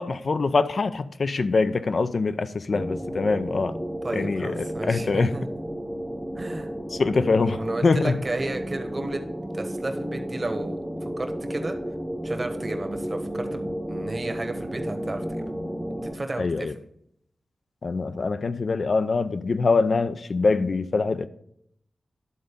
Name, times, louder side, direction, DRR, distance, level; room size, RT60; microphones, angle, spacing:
voice 1, 0.0-3.8 4.1-5.3 6.9-8.2 16.4-16.7 17.8-21.3, left 4 dB, 65° left, 12 dB, 0.5 m, -24 dB
sound 1, 2.7-16.2, equal, 10° right, 0.8 m, -32 dB
voice 2, 4.0-5.5 6.4-6.7 7.5-9.2 9.5-10.8 11.2-11.8 12.2-15.4 16.0-16.7, right 2 dB, 40° right, 6 dB, 1.2 m, -33 dB
11.0 x 3.9 x 5.2 m, 0.71 s
cardioid pair, 45°, 0 cm